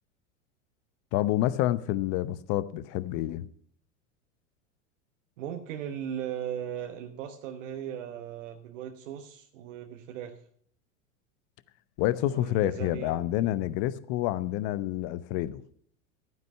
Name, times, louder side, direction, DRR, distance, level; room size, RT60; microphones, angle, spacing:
voice 1, 1.1-3.5 12.0-15.6, left 14 dB, 50° left, 0.9 m, -28 dB
voice 2, 5.4-10.4 12.1-13.1, right 9 dB, 70° right, 1.2 m, -38 dB
12.0 x 9.5 x 5.6 m
hypercardioid pair, 95°, 40 cm